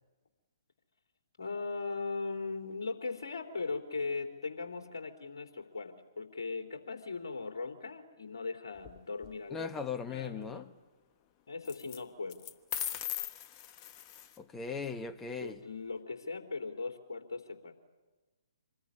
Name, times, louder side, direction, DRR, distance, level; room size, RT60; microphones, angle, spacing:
voice 1, 1.4-10.7 11.5-12.5 15.4-17.7, left 4 dB, 60° left, 3.5 m, -39 dB
sound 1, 8.8-9.3 11.6-12.0 12.3-14.4, left 10 dB, 25° left, 1.2 m, -39 dB
voice 2, 9.5-10.7 14.4-15.6, left 5 dB, 10° left, 1.3 m, -38 dB
26.5 x 21.0 x 9.9 m
figure-of-eight pair, 130°, 2 cm